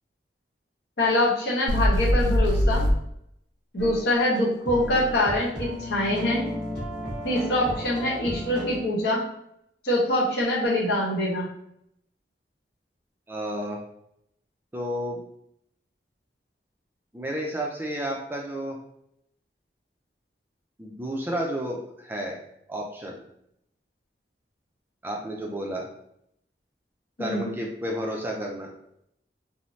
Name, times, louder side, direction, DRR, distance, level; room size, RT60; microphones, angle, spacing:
voice 1, 1.0-2.8 3.7-6.5 7.2-9.2 9.8-11.5 27.2-27.5, left 1 dB, 70° left, -3 dB, 0.9 m, -24 dB
sound 1, 1.7-3.0, equal, 80° right, 0.4 m, -21 dB
sound 2, 3.8-4.0 4.3-4.4 4.6-8.8, left 1 dB, 5° left, 1.3 m, -34 dB
voice 2, 13.3-13.8 14.7-15.2 17.1-18.8 20.8-22.4 22.7-23.2 25.0-25.9 27.2-28.7, equal, 10° right, 0 dB, 0.3 m, -31 dB
2.6 x 2.0 x 3.0 m, 0.75 s
head